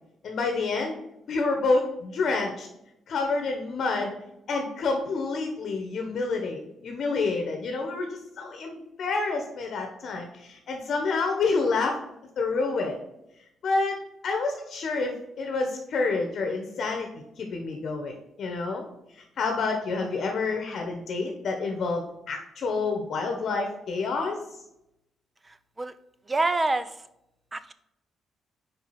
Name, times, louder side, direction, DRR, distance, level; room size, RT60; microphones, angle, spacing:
voice 1, 0.2-1.0 1.3-2.7 3.1-4.1 4.5-12.0 12.4-13.0 13.6-17.1 17.4-18.8 19.4-24.4, left 3 dB, 60° left, 3 dB, 1.0 m, -28 dB
voice 2, 26.3-27.0 27.5-27.7, right 2 dB, 20° right, 13 dB, 0.5 m, -26 dB
5.1 x 4.7 x 4.2 m, 0.84 s
cardioid pair, 90°, 0 cm